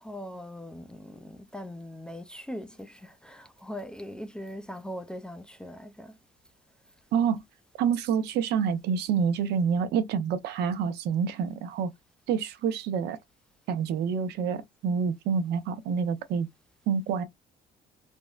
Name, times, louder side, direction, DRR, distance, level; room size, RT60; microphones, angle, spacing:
voice 1, 0.0-6.2, equal, 5° left, 0.5 m, -40 dB
voice 2, 7.1-7.4 7.8-11.9 12.3-13.2 13.7-16.5 16.9-17.2, right 7 dB, 75° right, 0.8 m, -27 dB
3.5 x 2.1 x 2.4 m
cardioid pair, 110°, 17 cm